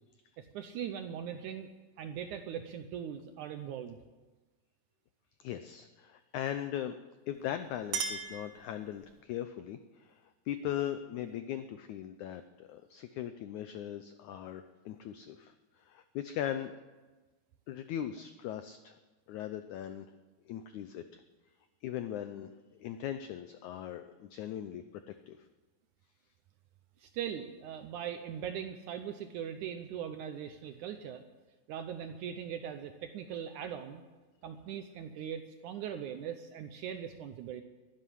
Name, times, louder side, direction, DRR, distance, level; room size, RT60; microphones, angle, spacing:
voice 1, 0.4-1.7 2.0-4.0 27.0-31.2 31.7-34.0 34.4-37.6, right 9 dB, 75° right, 8 dB, 1.8 m, -40 dB
voice 2, 5.4-7.0 7.3-16.8 17.7-19.0 19.3-20.1 20.5-21.2 21.8-25.4, left 10 dB, 90° left, 9 dB, 1.7 m, -39 dB
Chink clink, 7.4-9.2, right 5 dB, 55° right, 2.7 m, -39 dB
12.0 x 12.0 x 10.0 m, 1.2 s
omnidirectional pair, 4.3 m